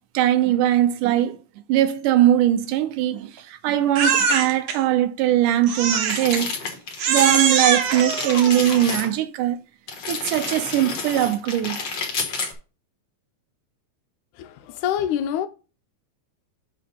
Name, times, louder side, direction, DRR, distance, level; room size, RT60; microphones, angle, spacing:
voice 1, 0.1-1.4 1.7-6.5 7.1-9.6 10.1-11.8, right 12 dB, 85° right, 2.3 m, -20 dB
Crying sobbing, 4.0-4.8 5.7-6.4 7.0-9.1, right 6 dB, 65° right, 1.6 m, -23 dB
sound 1, 6.0-7.5 7.7-9.1 9.9-12.5, left 4 dB, 45° left, 1.6 m, -30 dB
voice 2, 14.4-15.5, left 10 dB, 80° left, 1.9 m, -26 dB
6.7 x 3.9 x 5.2 m
omnidirectional pair, 3.6 m